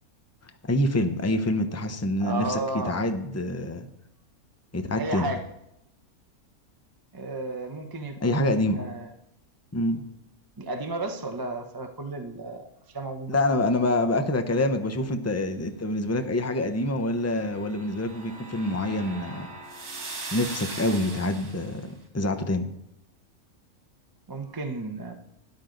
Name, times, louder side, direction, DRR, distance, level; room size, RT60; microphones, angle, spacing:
voice 1, 0.6-3.9 4.7-5.3 8.2-8.8 9.7-10.0 13.3-19.5 20.3-21.9 22.1-22.7, left 1 dB, 20° left, 7 dB, 0.5 m, -26 dB
voice 2, 2.2-3.1 5.0-5.4 7.1-9.1 10.6-13.4 24.3-25.1, right 2 dB, 20° right, 4 dB, 0.7 m, -33 dB
sound 1, 17.2-21.8, right 3 dB, 85° right, 2.4 m, -40 dB
13.0 x 10.5 x 3.9 m, 0.82 s
omnidirectional pair, 1.6 m